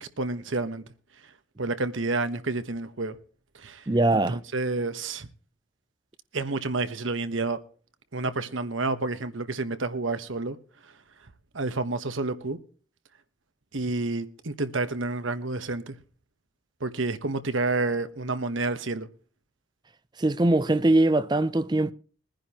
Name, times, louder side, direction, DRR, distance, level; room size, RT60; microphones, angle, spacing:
voice 1, 0.0-0.8 1.6-3.2 3.5-3.9 4.1-5.3 6.3-7.6 8.1-10.6 11.5-12.6 13.7-16.0 16.8-19.1, right 3 dB, 80° right, 1.2 m, -29 dB
voice 2, 3.9-4.4 20.2-21.9, right 2 dB, 20° right, 0.5 m, -22 dB
22.0 x 10.5 x 2.9 m
head